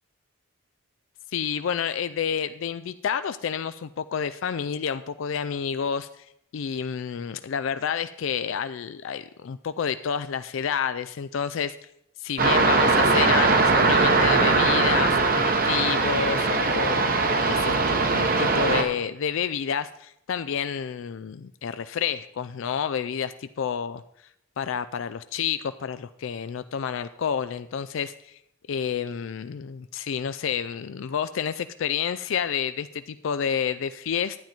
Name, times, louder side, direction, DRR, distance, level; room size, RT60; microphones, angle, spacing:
voice 1, 1.3-6.3 6.5-11.8 12.2-23.3 23.6-24.0 24.6-28.4 28.7-34.5, left 7 dB, 70° left, 12 dB, 0.4 m, -29 dB
sound 1, 12.4-18.8, right 3 dB, 45° right, 1.0 m, -21 dB
12.0 x 9.2 x 4.4 m, 0.75 s
head